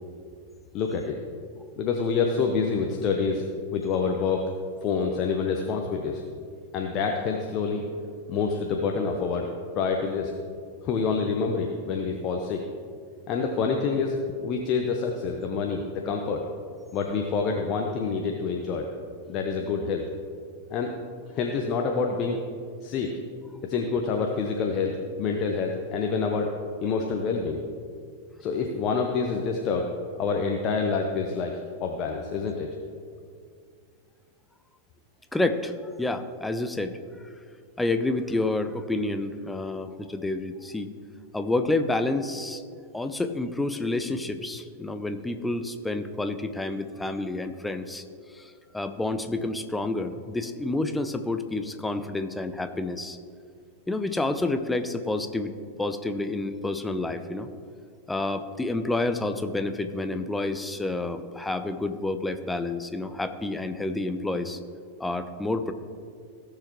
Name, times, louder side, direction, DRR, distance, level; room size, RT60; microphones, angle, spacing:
voice 1, 0.7-1.2 1.8-3.4 3.7-4.5 4.8-6.2 6.7-7.8 8.3-9.5 9.7-10.3 10.8-12.6 13.3-16.4 16.9-18.9 19.3-20.0 20.7-20.9 21.3-22.4 22.8-23.1 23.6-26.5 26.8-27.6 28.4-29.9 30.2-32.7, left 5 dB, 35° left, 2 dB, 0.8 m, -27 dB
voice 2, 35.3-35.7 36.0-36.9 37.8-40.9 41.3-42.6 42.9-48.0 48.3-53.2 53.9-55.5 55.8-57.5 58.1-64.6 65.0-65.7, left 2 dB, 5° left, 9 dB, 0.6 m, -29 dB
17.0 x 6.8 x 3.0 m, 2.2 s
figure-of-eight pair, 90°, 0 cm